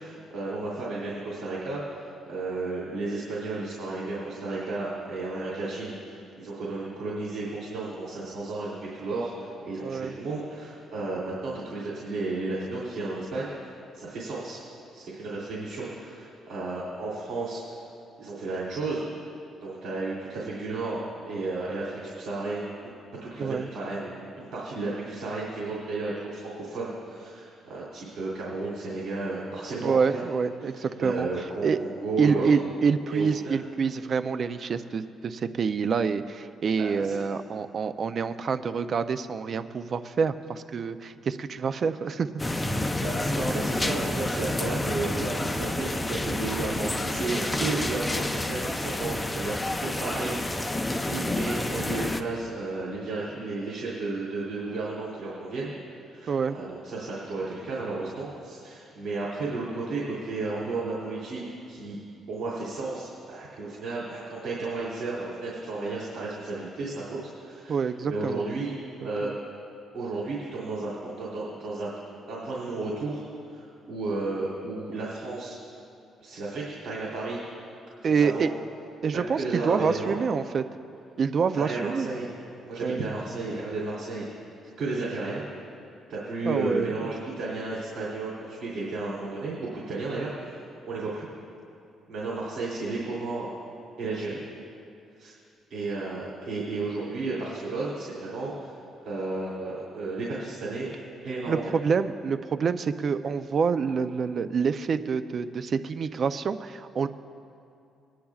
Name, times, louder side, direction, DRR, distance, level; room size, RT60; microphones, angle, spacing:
voice 1, 0.0-14.6 14.9-17.6 18.2-19.0 19.6-22.7 23.2-30.2 31.0-32.5 33.1-33.6 36.8-37.2 43.0-55.7 56.1-61.4 61.7-62.0 62.3-67.2 67.4-68.7 69.0-69.3 69.9-71.9 72.3-73.2 73.5-75.6 76.2-77.4 78.2-78.5 79.1-80.1 81.5-82.3 82.6-84.2 84.8-85.4 86.1-91.3 92.1-93.5 94.0-94.4 95.2-95.4 95.7-98.8 99.0-100.9 101.2-101.6, right 3 dB, 70° right, -6 dB, 2.8 m, -33 dB
voice 2, 9.8-10.2 23.4-23.7 29.8-31.3 31.6-31.8 32.2-42.4 43.3-43.6 56.3-56.6 67.7-68.4 69.0-69.3 78.0-78.5 79.0-80.6 81.2-82.1 82.8-83.0 86.4-86.9 101.5-107.1, right 5 dB, 50° right, 11 dB, 0.5 m, -27 dB
sound 1, 42.4-52.2, left 1 dB, 15° left, 0.6 m, -29 dB
22.0 x 10.0 x 2.4 m, 2.5 s
cardioid pair, 90°, 0 cm